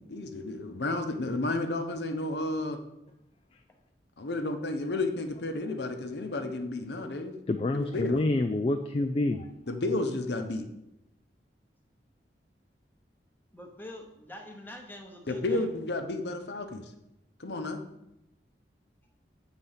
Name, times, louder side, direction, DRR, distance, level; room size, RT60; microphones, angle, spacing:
voice 1, 0.0-2.8 4.2-7.4 7.7-8.2 9.7-10.6 15.3-16.8 17.4-17.8, left 2 dB, 70° left, 7 dB, 0.8 m, -32 dB
voice 2, 7.5-9.5, left 2 dB, 30° left, 7 dB, 0.3 m, -28 dB
voice 3, 13.5-15.7, left 1 dB, 10° left, 2 dB, 0.9 m, -45 dB
7.9 x 4.0 x 5.7 m, 0.87 s
head